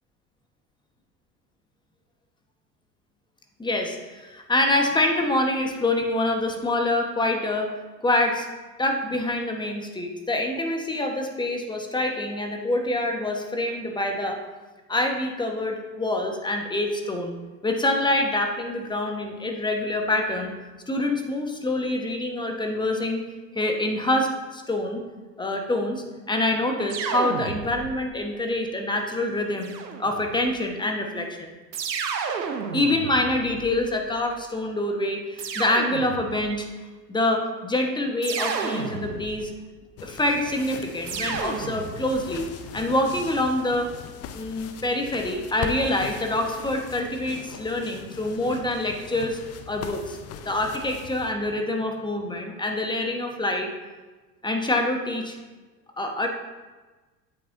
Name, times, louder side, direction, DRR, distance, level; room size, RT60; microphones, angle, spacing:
voice 1, 3.6-7.7 8.0-8.5 8.8-14.4 14.9-17.4 17.6-20.5 20.9-23.2 23.5-25.0 25.4-29.7 30.0-31.5 32.7-36.7 37.1-39.5 40.0-42.5 42.7-43.9 44.3-49.4 49.7-50.2 50.4-53.7 54.4-55.4 56.0-56.3, left 1 dB, 10° left, 3 dB, 1.2 m, -26 dB
sound 1, 26.9-28.1 29.6-30.5 31.7-34.0 35.4-36.5 38.2-39.6 41.1-42.3, right 6 dB, 80° right, 0.9 m, -32 dB
sound 2, 40.0-51.3, left 7 dB, 30° left, 0.7 m, -40 dB
8.8 x 8.5 x 2.7 m, 1.3 s
figure-of-eight pair, 75°, 49 cm